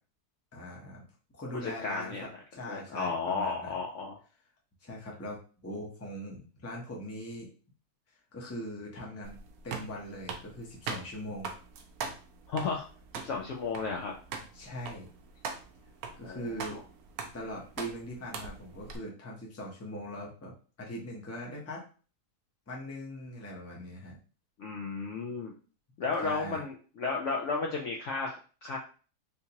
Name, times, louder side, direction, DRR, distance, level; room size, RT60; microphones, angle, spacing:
voice 1, 0.5-1.0 1.3-3.8 4.8-7.5 8.3-9.4 9.6-11.5 14.5-15.1 16.2-16.8 17.3-21.8 22.7-24.2 26.2-26.6, equal, 15° left, -2 dB, 0.5 m, -41 dB
voice 2, 1.6-2.2 2.6-4.2 12.5-12.9 13.2-14.1 16.2-16.8 24.6-25.5 26.0-28.8, left 4 dB, 70° left, 0 dB, 0.7 m, -33 dB
sound 1, 9.2-19.0, right 5 dB, 75° right, 1.0 m, -42 dB
3.6 x 2.7 x 2.8 m, 0.37 s
omnidirectional pair, 1.7 m